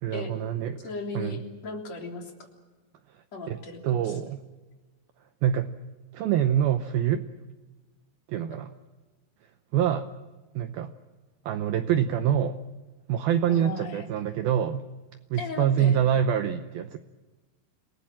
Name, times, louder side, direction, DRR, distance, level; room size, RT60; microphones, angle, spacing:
voice 1, 0.0-0.9 1.1-1.4 3.5-4.4 5.4-5.7 6.1-7.3 8.3-8.7 9.7-10.1 10.6-10.9 11.5-12.6 13.1-14.8 15.3-17.0, right 9 dB, 85° right, 9 dB, 2.1 m, -25 dB
voice 2, 0.8-2.3 3.3-4.2 8.5-8.6 13.5-14.1 15.4-16.0, left 3 dB, 40° left, 2 dB, 4.1 m, -37 dB
28.5 x 19.5 x 7.5 m, 1.2 s
omnidirectional pair, 5.4 m